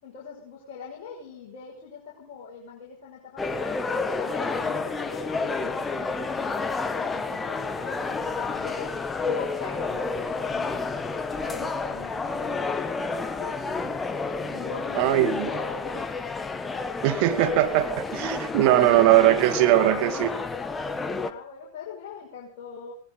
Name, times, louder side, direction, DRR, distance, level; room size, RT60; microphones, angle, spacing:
voice 1, 0.0-9.0 9.3-10.8 11.4-14.0 14.4-16.1 21.0-22.9, left 6 dB, 45° left, -4 dB, 5.6 m, -41 dB
sound 1, 3.4-21.3, left 4 dB, 15° left, 1.4 m, -30 dB
voice 2, 14.9-15.6 17.0-20.3, right 14 dB, 45° right, 7 dB, 2.5 m, -20 dB
19.5 x 19.0 x 3.8 m, 0.41 s
figure-of-eight pair, 90°, 0 cm